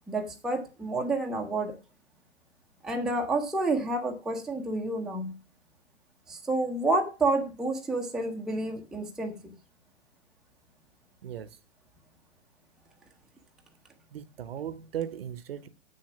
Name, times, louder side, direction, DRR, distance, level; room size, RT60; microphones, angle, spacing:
voice 1, 0.1-1.7 2.8-5.3 6.3-9.4, right 2 dB, ahead, 0.7 m, -29 dB
voice 2, 11.2-11.6 14.1-15.7, right 10 dB, 50° right, 1.0 m, -37 dB
8.1 x 6.6 x 5.8 m
figure-of-eight pair, 120°, 37 cm